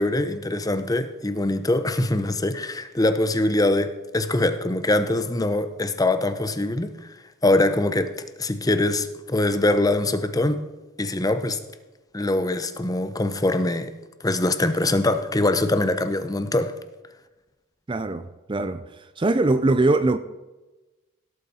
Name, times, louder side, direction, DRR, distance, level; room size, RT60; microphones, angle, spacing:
voice 1, 0.0-6.9 7.4-8.1 8.4-10.6 11.0-11.6 12.1-13.9 14.2-16.7, left 2 dB, 15° left, 0.7 m, -23 dB
voice 2, 17.9-18.8 19.2-20.2, right 2 dB, 25° right, 0.4 m, -21 dB
17.0 x 8.5 x 4.3 m
head